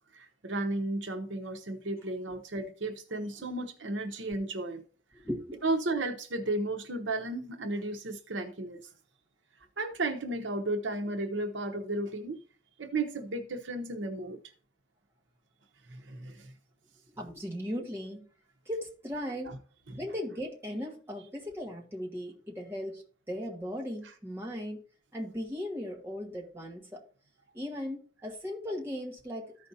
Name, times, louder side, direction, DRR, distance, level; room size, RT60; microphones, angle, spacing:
voice 1, 0.1-4.8 5.6-8.8 9.8-12.4 12.8-14.4 15.9-16.5 19.4-19.6 19.9-20.0, right 2 dB, 75° right, 0.9 m, -34 dB
voice 2, 5.1-5.6 17.1-18.2 18.6-19.6 19.9-24.8 25.1-27.0 27.5-29.6, equal, 15° right, 1.6 m, -37 dB
14.0 x 5.1 x 2.8 m
head